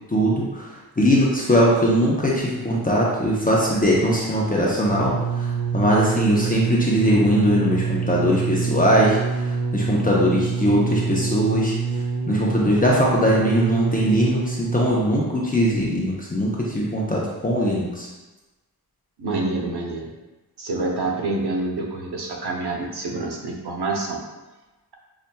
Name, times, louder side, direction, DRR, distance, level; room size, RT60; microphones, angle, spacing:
voice 1, 0.1-0.7 1.0-9.2 9.4-11.8 12.3-18.1, equal, 20° left, -5 dB, 0.7 m, -20 dB
sound 1, 4.9-15.0 15.8-15.9, right 5 dB, 40° right, 0.5 m, -26 dB
voice 2, 19.2-20.0 20.6-24.2, right 2 dB, 80° right, 0 dB, 0.8 m, -27 dB
5.4 x 2.4 x 2.2 m, 1.1 s
wide cardioid pair, 75°, 39 cm